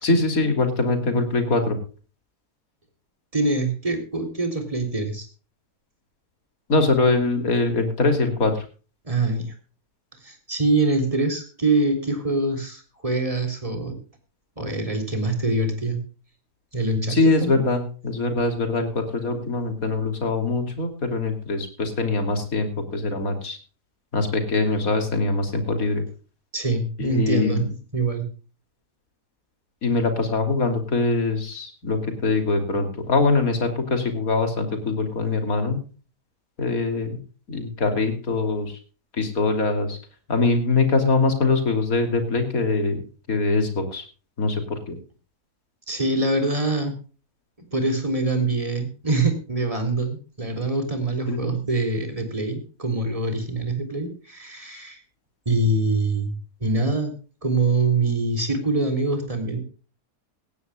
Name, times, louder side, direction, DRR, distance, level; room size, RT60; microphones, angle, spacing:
voice 1, 0.0-1.8 6.7-8.7 17.1-23.6 24.1-26.0 27.0-27.6 29.8-35.8 36.6-37.2 37.5-38.7 39.2-40.0 40.3-43.0 43.3-44.0 44.4-45.0 51.3-51.6, left 3 dB, 60° left, 6 dB, 3.4 m, -23 dB
voice 2, 3.3-5.3 9.0-9.5 10.2-14.0 14.6-16.0 16.7-17.6 26.5-27.7 27.9-28.3 45.9-47.0 47.7-55.0 55.5-56.4 56.6-57.1 57.4-59.6, right 2 dB, 20° right, 5 dB, 3.7 m, -24 dB
18.5 x 16.0 x 2.4 m, 0.36 s
omnidirectional pair, 1.7 m